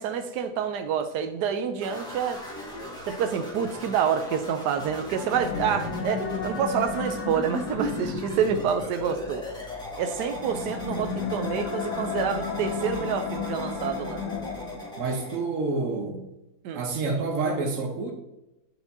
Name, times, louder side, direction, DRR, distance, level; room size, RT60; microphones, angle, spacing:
voice 1, 0.0-2.4 3.1-9.4 10.0-14.2 16.6-16.8, right 7 dB, 90° right, 7 dB, 1.2 m, -28 dB
sound 1, 1.8-15.4, left 1 dB, 5° left, 1.5 m, -38 dB
sound 2, 5.1-14.9, left 6 dB, 80° left, 1.4 m, -34 dB
voice 2, 15.0-16.2 16.7-18.1, right 3 dB, 55° right, 3 dB, 1.4 m, -28 dB
9.8 x 4.4 x 2.7 m, 0.92 s
omnidirectional pair, 1.7 m